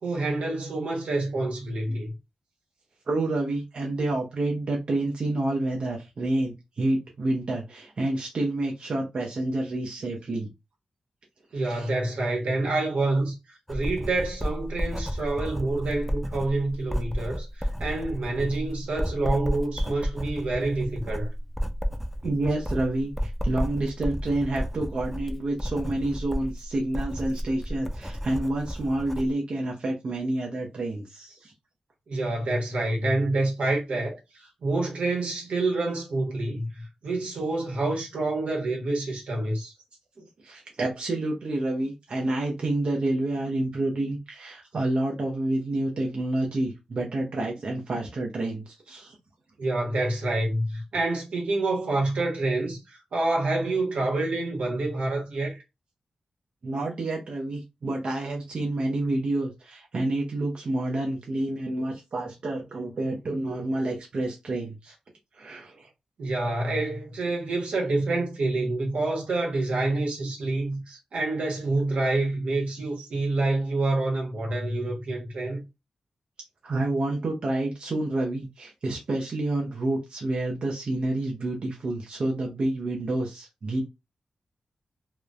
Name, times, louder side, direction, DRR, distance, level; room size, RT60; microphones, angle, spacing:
voice 1, 0.0-2.1 11.5-21.3 32.1-39.7 49.6-55.6 66.2-70.8 71.1-75.6, right 2 dB, 85° right, 1.0 m, -27 dB
voice 2, 3.1-10.5 11.5-11.9 22.2-31.5 40.2-49.2 56.6-65.0 65.3-65.9 70.9-71.0 76.6-83.8, right 2 dB, 55° right, 0.6 m, -29 dB
Writing, 13.7-29.3, equal, ahead, 0.4 m, -32 dB
2.9 x 2.0 x 2.4 m
wide cardioid pair, 100°, 2 cm